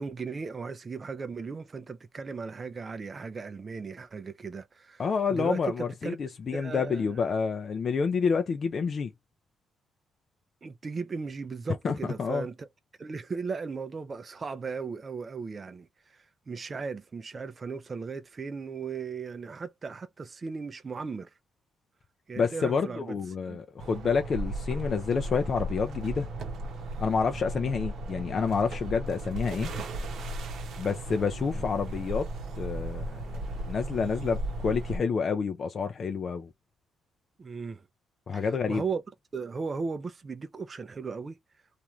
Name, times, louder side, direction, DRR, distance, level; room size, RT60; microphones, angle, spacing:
voice 1, 0.0-6.2 6.5-7.2 10.6-12.7 13.0-21.3 22.3-23.2 23.5-23.6 31.5-31.6 37.4-37.8 38.3-39.0 39.3-41.4, right 5 dB, 35° right, 0.4 m, -37 dB
voice 2, 5.0-9.1 11.8-12.4 22.4-26.3 27.0-29.7 30.8-32.3 32.6-36.5 38.3-38.8, left 5 dB, 45° left, 0.4 m, -29 dB
sound 1, 23.8-35.0, right 2 dB, 70° right, 0.8 m, -36 dB
2.9 x 2.5 x 2.3 m
cardioid pair, 90°, 0 cm